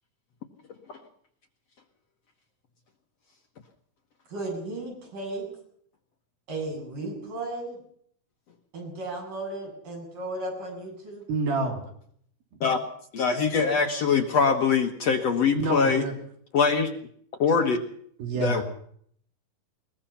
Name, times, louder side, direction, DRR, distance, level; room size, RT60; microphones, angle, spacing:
voice 1, 4.3-5.5 6.5-7.8 8.7-11.3, right 2 dB, 60° right, 0 dB, 9.5 m, -35 dB
voice 2, 11.3-11.8 15.5-16.1 18.2-18.6, right 3 dB, 80° right, 2 dB, 4.7 m, -27 dB
voice 3, 13.1-16.1 16.5-16.9 17.4-17.9 18.3-18.6, left 5 dB, 55° left, 5 dB, 2.0 m, -23 dB
22.0 x 21.0 x 5.7 m, 0.64 s
omnidirectional pair, 4.2 m